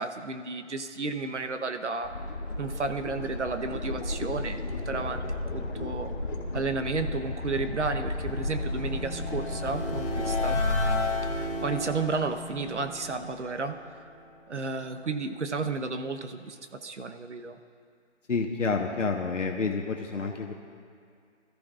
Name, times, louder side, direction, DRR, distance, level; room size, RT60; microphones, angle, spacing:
voice 1, 0.0-2.1 2.6-6.1 6.5-10.6 11.3-13.7 14.5-17.6, right 4 dB, 65° right, 8 dB, 1.1 m, -32 dB
sound 1, 2.0-10.4, left 2 dB, 55° left, 2.2 m, -34 dB
sound 2, 7.3-14.3, left 2 dB, 35° left, 3.6 m, -32 dB
voice 2, 18.3-20.5, left 4 dB, 80° left, 2 dB, 1.3 m, -29 dB
24.5 x 13.5 x 2.5 m, 2.2 s
hypercardioid pair, 175°, 37 cm